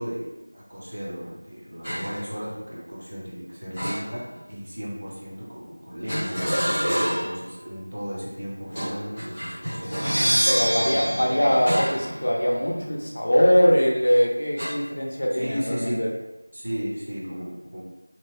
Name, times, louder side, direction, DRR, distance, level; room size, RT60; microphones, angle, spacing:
voice 1, 0.0-6.5 7.0-10.0 10.5-11.2 15.3-16.1 16.5-17.8, equal, 50° right, -6 dB, 0.9 m, -35 dB
sound 1, 1.8-2.2 3.7-4.5 6.1-7.4 8.7-10.4 11.7-12.1 12.5-12.7 14.6-14.7, equal, 5° left, 1.1 m, -28 dB
sound 2, 9.8-12.7, equal, 75° right, 0.3 m, -26 dB
voice 2, 10.5-16.1, equal, 45° left, -1 dB, 0.5 m, -22 dB
2.9 x 2.2 x 2.7 m, 1.0 s
figure-of-eight pair, 175°, 0 cm